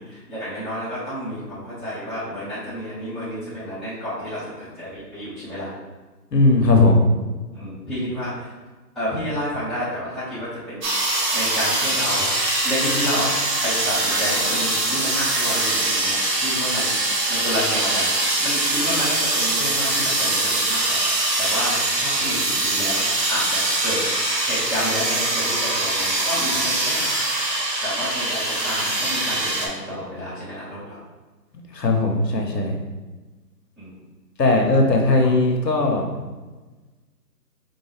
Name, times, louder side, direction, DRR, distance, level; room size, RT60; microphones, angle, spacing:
voice 1, 0.0-5.7 7.5-8.5 8.9-10.8 11.3-12.3 12.6-16.9 17.3-18.1 18.4-24.0 24.4-27.1 27.8-31.0 33.8-33.9 35.2-35.3, equal, ahead, -16 dB, 0.7 m, -30 dB
voice 2, 6.3-7.0 31.7-32.7 34.4-36.1, left 2 dB, 75° left, 1 dB, 1.0 m, -18 dB
sound 1, 10.8-29.7, right 2 dB, 75° right, 1.1 m, -23 dB
4.7 x 2.5 x 3.3 m, 1.2 s
hypercardioid pair, 180°, 49 cm